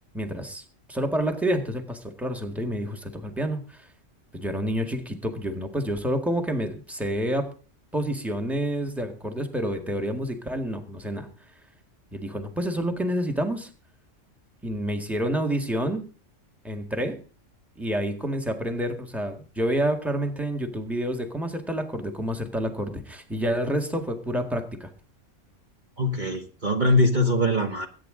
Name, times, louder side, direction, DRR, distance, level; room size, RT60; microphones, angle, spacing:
voice 1, 0.1-0.6 0.9-3.9 4.3-7.5 7.9-11.3 12.1-13.7 14.6-16.1 16.6-17.2 17.8-24.9, right 1 dB, ahead, 4 dB, 1.7 m, -28 dB
voice 2, 26.0-27.9, left 1 dB, 40° right, 3 dB, 1.4 m, -22 dB
22.0 x 9.5 x 3.8 m, 0.36 s
omnidirectional pair, 1.3 m